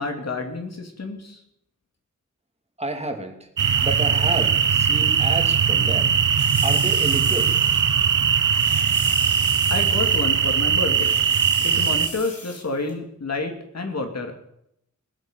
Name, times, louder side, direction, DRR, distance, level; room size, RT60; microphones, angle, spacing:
voice 1, 0.0-1.4 9.7-11.1 11.6-14.3, left 3 dB, 55° left, 4 dB, 2.9 m, -29 dB
voice 2, 2.8-3.5 3.8-6.1 6.6-7.5, right 2 dB, 20° right, 3 dB, 2.7 m, -30 dB
sound 1, 3.6-12.1, right 7 dB, 85° right, 1.0 m, -20 dB
sound 2, 6.4-7.8 8.1-8.2 8.5-10.2 10.5-10.6 10.9-12.6 12.9-13.0, left 3 dB, 75° left, 4.4 m, -37 dB
20.0 x 8.7 x 7.6 m, 0.76 s
wide cardioid pair, 120°, 31 cm